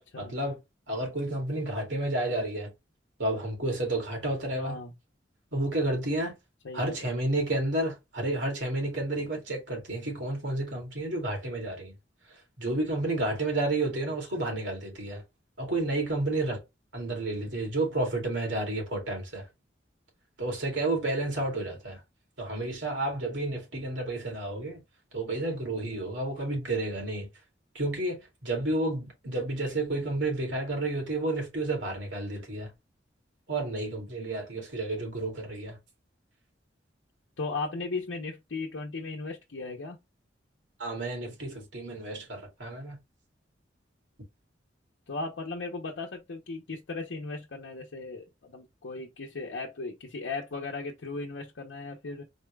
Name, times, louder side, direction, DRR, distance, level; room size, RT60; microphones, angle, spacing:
voice 1, 0.2-0.6 0.9-2.7 3.2-4.8 5.5-6.3 6.7-11.9 12.6-15.2 15.6-16.6 16.9-19.4 20.4-22.0 22.4-24.8 25.1-27.3 27.7-32.7 33.5-35.8 40.8-43.0, right 2 dB, 75° right, 2.3 m, -31 dB
voice 2, 4.6-4.9 6.6-7.1 14.3-14.5 37.4-40.0 45.1-52.2, left 3 dB, 80° left, 0.7 m, -37 dB
4.2 x 2.3 x 3.2 m
head